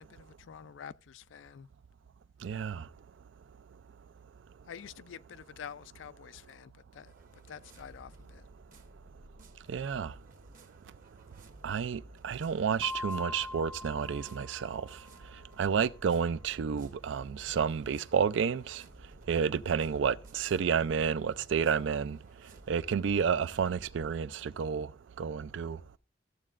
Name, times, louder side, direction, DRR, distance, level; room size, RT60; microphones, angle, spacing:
voice 1, 0.0-1.7 4.6-8.5, left 8 dB, 90° left, 0.4 m, -48 dB
voice 2, 2.4-2.9 9.7-10.2 11.6-15.0 15.6-18.8 19.3-22.2 22.7-24.9 25.2-25.8, right 6 dB, 75° right, 0.4 m, -30 dB
sound 1, 7.1-24.1, right 1 dB, 50° right, 1.1 m, -55 dB
sound 2, 12.8-15.3, left 2 dB, 15° left, 0.3 m, -42 dB
14.0 x 7.5 x 2.5 m
head